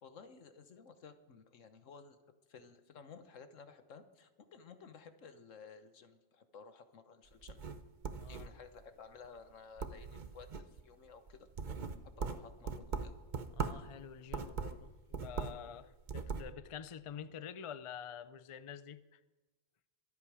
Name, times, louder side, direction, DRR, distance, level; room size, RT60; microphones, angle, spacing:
voice 1, 0.0-2.2 2.5-7.6 8.3-11.5 12.2-13.1, left 5 dB, 80° left, 9 dB, 1.5 m, -55 dB
sound 1, 7.3-8.8 9.2-9.5 9.8-10.8 11.3-13.9 14.3-15.7 16.0-16.5, right 5 dB, 45° right, 0.9 m, -40 dB
voice 2, 8.1-8.5 13.6-19.2, left 8 dB, 45° left, 13 dB, 0.4 m, -48 dB
23.5 x 8.4 x 4.9 m, 1.1 s
omnidirectional pair, 1.3 m